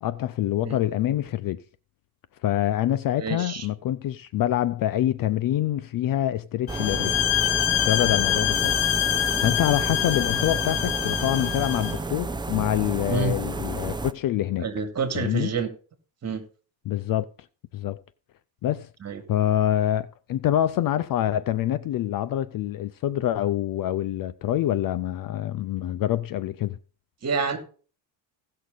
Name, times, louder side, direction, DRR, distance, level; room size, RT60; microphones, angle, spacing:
voice 1, 0.0-1.6 2.4-7.2 7.8-8.8 9.4-14.7 15.1-15.5 16.9-17.3 17.7-18.0 18.6-18.9 19.3-26.8, left 12 dB, 45° left, 0.6 m, -26 dB
voice 2, 3.2-3.7 13.1-13.3 14.6-15.7 16.2-16.4 19.0-19.2 27.2-27.6, right 5 dB, 30° right, 2.6 m, -28 dB
sound 1, 6.7-12.0, left 13 dB, 70° left, 1.2 m, -25 dB
sound 2, 6.7-14.1, right 3 dB, 10° right, 0.6 m, -31 dB
16.5 x 6.6 x 3.9 m
cardioid pair, 115°, 48 cm